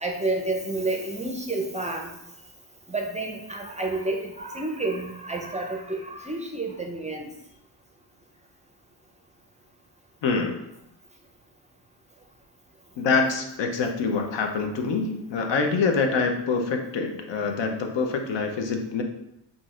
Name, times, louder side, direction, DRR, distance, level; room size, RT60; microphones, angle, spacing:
voice 1, 0.0-2.1 2.9-7.3, right 2 dB, 15° right, 1 dB, 0.5 m, -30 dB
voice 2, 10.2-10.6 13.0-19.0, left 4 dB, 65° left, 4 dB, 0.7 m, -25 dB
3.9 x 2.6 x 2.4 m, 0.85 s
supercardioid pair, 60°, 47 cm